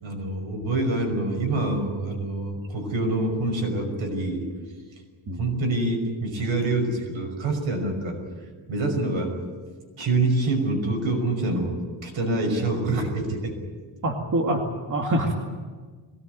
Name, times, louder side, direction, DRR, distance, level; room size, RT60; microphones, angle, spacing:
voice 1, 0.0-4.4 5.4-8.2 8.7-9.3 10.0-11.8 12.0-13.5, right 2 dB, 90° right, 3 dB, 5.9 m, -26 dB
voice 2, 14.0-15.3, right 1 dB, 40° right, 1 dB, 2.3 m, -25 dB
22.0 x 18.5 x 9.3 m, 1.5 s
wide cardioid pair, 160°, 46 cm